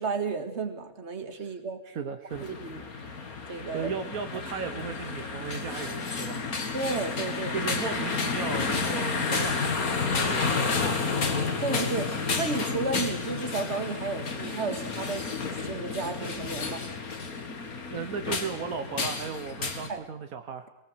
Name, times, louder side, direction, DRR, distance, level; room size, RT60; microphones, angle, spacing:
voice 1, 0.0-1.8 2.4-2.8 3.5-3.9 6.7-7.5 11.6-15.2 15.6-16.8 19.9-20.0, right 4 dB, 50° right, 8 dB, 2.2 m, -32 dB
voice 2, 1.9-2.4 3.7-6.4 7.5-11.1 17.9-20.7, right 6 dB, 80° right, 8 dB, 1.6 m, -36 dB
sound 1, 2.3-19.9, left 4 dB, 90° left, 2.5 m, -31 dB
22.5 x 19.0 x 7.9 m, 0.79 s
omnidirectional pair, 1.5 m